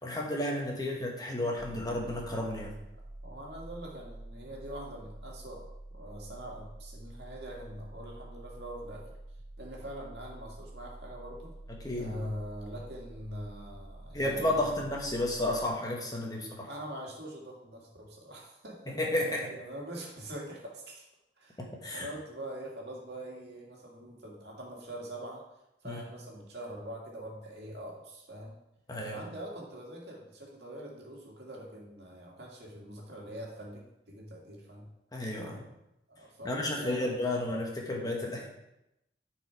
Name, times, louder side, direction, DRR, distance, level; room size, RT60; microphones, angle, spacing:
voice 1, 0.0-2.7 11.8-12.2 14.1-16.7 18.9-19.5 21.6-22.1 25.8-26.0 28.9-29.2 35.1-35.6 36.4-38.5, left 1 dB, 20° left, -1 dB, 1.3 m, -32 dB
sound 1, 1.6-15.7, right 1 dB, 20° right, 0.7 m, -48 dB
voice 2, 3.2-5.6 5.9-9.1 9.6-11.5 12.0-14.8 16.6-19.0 19.5-21.0 21.4-25.4 25.8-28.5 29.0-34.9 36.1-37.1, right 1 dB, 65° right, -2 dB, 2.2 m, -43 dB
10.5 x 4.8 x 4.7 m, 0.87 s
head